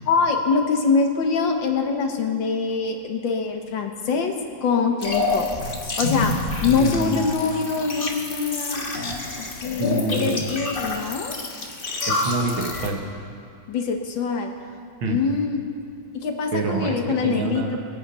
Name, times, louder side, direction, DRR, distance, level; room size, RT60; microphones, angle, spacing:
voice 1, 0.1-4.3 4.6-5.5 6.0-6.3 6.6-8.9 9.4-11.4 13.7-14.5 15.1-15.7 16.1-17.8, left 5 dB, 70° left, 4 dB, 1.9 m, -24 dB
sound 1, 5.0-12.9, left 2 dB, 30° left, 1.5 m, -28 dB
voice 2, 6.6-7.3 9.8-10.3 12.1-13.0 15.0-15.2 16.5-17.8, right 3 dB, 85° right, 2 dB, 2.2 m, -26 dB
22.5 x 8.5 x 5.6 m, 2.3 s
omnidirectional pair, 2.1 m